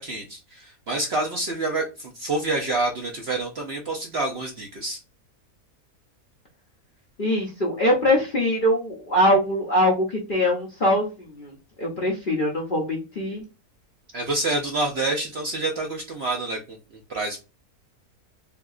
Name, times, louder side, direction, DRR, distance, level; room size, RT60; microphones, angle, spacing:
voice 1, 0.0-5.0 14.1-16.8 17.1-17.4, right 2 dB, 55° right, 1 dB, 0.7 m, -27 dB
voice 2, 7.2-13.4, left 1 dB, 45° left, -2 dB, 0.7 m, -23 dB
3.4 x 2.8 x 2.4 m, 0.30 s
omnidirectional pair, 1.6 m